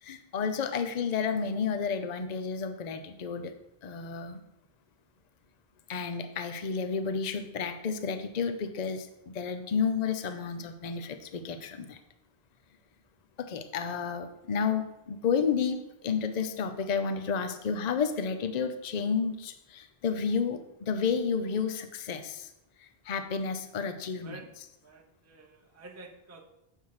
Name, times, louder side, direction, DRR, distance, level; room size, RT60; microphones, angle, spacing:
voice 1, 0.0-3.5 3.8-4.4 5.9-12.0 13.4-22.5 22.8-24.6, left 6 dB, 50° left, 8 dB, 0.7 m, -31 dB
voice 2, 24.8-26.4, right 3 dB, 15° right, 1 dB, 0.7 m, -49 dB
7.2 x 5.6 x 4.7 m, 0.87 s
omnidirectional pair, 1.1 m